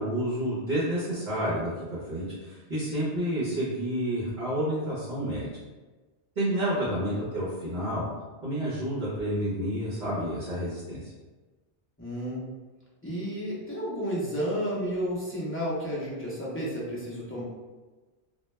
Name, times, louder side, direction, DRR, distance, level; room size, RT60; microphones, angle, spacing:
voice 1, 0.0-5.5 6.4-8.0 8.4-11.0, right 1 dB, 50° right, -10 dB, 0.7 m, -29 dB
voice 2, 12.0-12.4 13.0-17.4, equal, 20° left, -8 dB, 0.4 m, -32 dB
2.2 x 2.1 x 3.1 m, 1.2 s
omnidirectional pair, 1.1 m